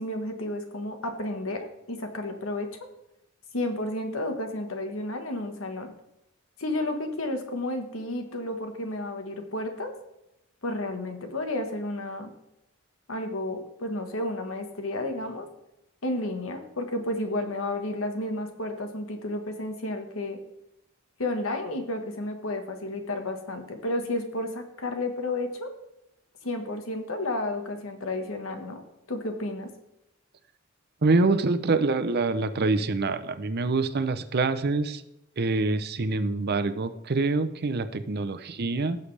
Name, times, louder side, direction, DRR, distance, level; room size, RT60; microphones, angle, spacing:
voice 1, 0.0-2.7 3.5-5.9 6.6-9.9 10.6-12.3 13.1-15.5 16.0-20.4 21.2-25.7 26.4-28.8 29.1-29.7, left 1 dB, 80° left, 6 dB, 1.4 m, -32 dB
voice 2, 31.0-35.0 35.4-39.0, right 3 dB, 50° right, 12 dB, 0.6 m, -25 dB
16.5 x 6.7 x 3.3 m, 0.88 s
head